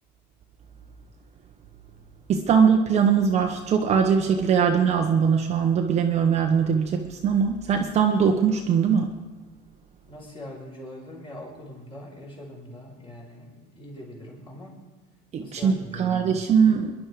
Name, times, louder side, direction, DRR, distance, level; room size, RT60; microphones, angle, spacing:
voice 1, 2.3-9.1 15.3-16.9, right 6 dB, 30° right, 3 dB, 1.2 m, -21 dB
voice 2, 10.1-14.8 15.4-16.3, left 1 dB, 25° left, -1 dB, 4.9 m, -42 dB
24.5 x 11.0 x 4.9 m, 1.2 s
cardioid pair, 145°, 21 cm